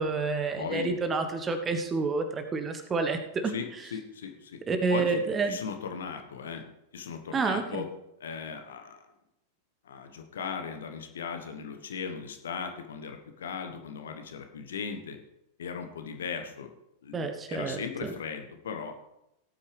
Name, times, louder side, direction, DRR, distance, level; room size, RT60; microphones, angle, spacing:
voice 1, 0.0-3.5 4.7-5.6 7.3-7.9 17.1-18.1, right 4 dB, 20° right, 8 dB, 1.2 m, -29 dB
voice 2, 0.6-1.0 3.4-4.6 4.9-6.7 6.9-7.9 8.2-9.0 9.8-15.2 15.6-16.7 17.0-19.0, left 6 dB, 65° left, 6 dB, 1.3 m, -37 dB
18.0 x 8.6 x 3.4 m, 0.87 s
figure-of-eight pair, 90°, 0 cm